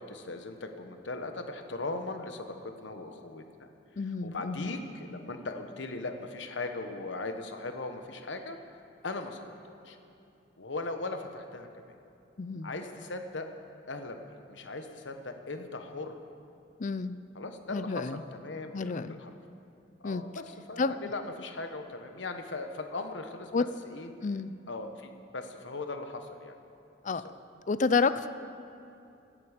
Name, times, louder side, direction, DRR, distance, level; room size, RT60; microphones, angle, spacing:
voice 1, 0.0-3.7 4.2-8.6 9.0-10.0 10.6-11.7 12.6-13.5 13.9-16.2 17.3-19.3 20.0-24.1 24.7-26.6 27.1-27.3, left 3 dB, 85° left, 6 dB, 1.2 m, -39 dB
voice 2, 4.0-4.7 12.4-12.7 16.8-17.2 17.7-18.2 18.7-19.2 20.0-20.2 20.8-20.9 23.5-23.6 24.2-24.5 27.0-27.2 27.7-28.3, left 4 dB, 45° left, 14 dB, 0.5 m, -29 dB
16.5 x 11.5 x 5.1 m, 2.8 s
head